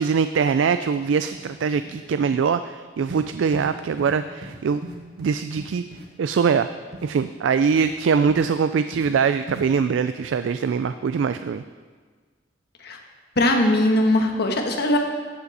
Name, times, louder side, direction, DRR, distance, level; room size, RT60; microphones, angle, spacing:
voice 1, 0.0-4.8 5.2-5.8 6.2-6.7 7.0-11.6, right 6 dB, 80° right, 11 dB, 0.4 m, -22 dB
sound 1, 0.9-1.0 1.3-1.5 1.8-2.0 2.3-2.5 3.1-3.3 3.5-3.7 4.0-4.2 4.4-4.5 4.8-6.0 6.4-6.5 6.9-7.1 7.7-7.9 8.3-8.5 8.9-9.1 9.5-9.6, right 1 dB, 60° right, 1.7 m, -38 dB
voice 2, 13.4-15.0, left 1 dB, 60° left, 2 dB, 1.4 m, -20 dB
14.5 x 8.5 x 4.2 m, 1.5 s
head